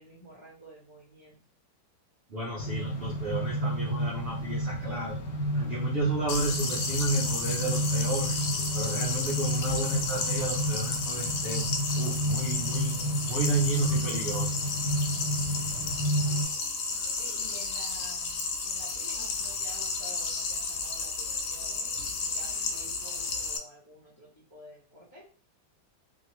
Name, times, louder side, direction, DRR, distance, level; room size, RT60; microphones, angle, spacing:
voice 1, 0.0-1.4 16.3-16.7 16.9-25.3, equal, 35° left, -5 dB, 0.4 m, -51 dB
voice 2, 2.3-5.2 5.5-8.4 8.7-11.6 11.9-12.9 13.3-14.7, right 2 dB, 80° right, -3 dB, 0.5 m, -32 dB
sound 1, 2.6-16.4, right 1 dB, 90° left, 1.3 m, -31 dB
sound 2, 6.3-23.6, left 4 dB, 75° left, 1.0 m, -32 dB
2.7 x 2.4 x 3.0 m, 0.39 s
omnidirectional pair, 1.9 m